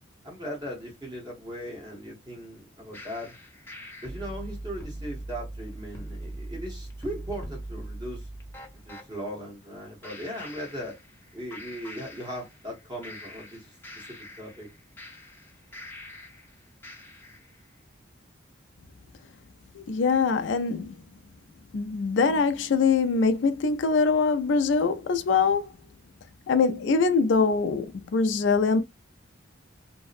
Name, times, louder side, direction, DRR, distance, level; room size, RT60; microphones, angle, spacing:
voice 1, 0.2-3.4 4.0-8.3 8.8-11.0 11.3-14.1 14.4-14.7, equal, 20° right, 0.9 m, -38 dB
sound 1, 2.9-9.1 10.0-11.3 11.5-12.7 13.0-16.5 16.8-17.5, right 1 dB, 10° left, 0.5 m, -41 dB
voice 2, 19.7-21.0 21.7-25.7 26.5-28.8, left 4 dB, 75° left, 0.4 m, -23 dB
2.6 x 2.1 x 2.4 m
head